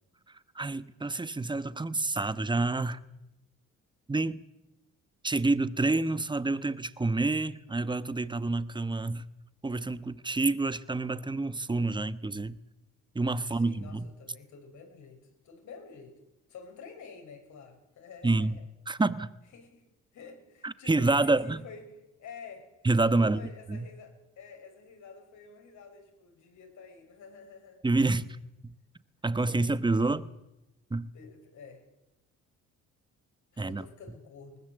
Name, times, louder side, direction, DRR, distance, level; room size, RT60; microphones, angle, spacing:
voice 1, 0.5-3.0 4.1-4.4 5.2-9.2 9.6-12.6 13.1-14.1 18.2-18.6 18.9-19.3 20.6-21.6 22.8-23.4 23.7-23.9 27.8-28.4 28.6-28.7 29.2-30.3 30.9-31.1 33.6-33.8, right 2 dB, 15° right, 1.1 m, -28 dB
voice 2, 13.4-16.2 16.5-18.6 19.5-19.8 20.1-21.9 22.2-22.7 23.1-27.8 29.3-30.0 31.1-31.8 33.5-34.6, left 5 dB, 70° left, 6.6 m, -49 dB
21.5 x 19.5 x 8.1 m
cardioid pair, 90°, 30 cm